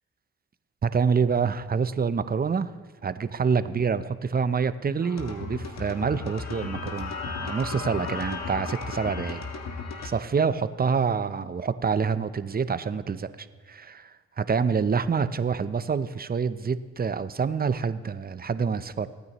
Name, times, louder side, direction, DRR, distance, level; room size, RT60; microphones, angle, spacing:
voice 1, 0.8-2.7 3.0-9.4 10.0-19.1, right 6 dB, 30° right, 13 dB, 0.7 m, -27 dB
sound 1, 5.0-10.1, left 4 dB, 60° left, 1.5 m, -35 dB
22.0 x 9.5 x 3.1 m, 1.4 s
supercardioid pair, 50°, 30 cm